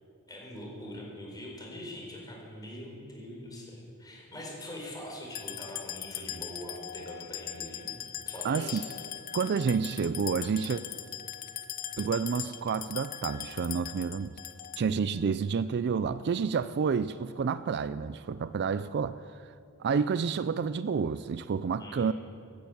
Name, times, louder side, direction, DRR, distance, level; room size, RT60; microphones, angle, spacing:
voice 1, 0.3-7.9 8.3-8.8 21.8-22.1, left 1 dB, 20° left, 4.6 m, -43 dB
sound 1, 5.3-15.0, left 11 dB, 40° left, 0.8 m, -40 dB
voice 2, 8.4-8.8 9.3-10.8 12.0-14.3 14.8-19.2 19.4-19.5 19.8-22.1, right 6 dB, 50° right, 0.4 m, -29 dB
15.0 x 10.5 x 8.8 m
head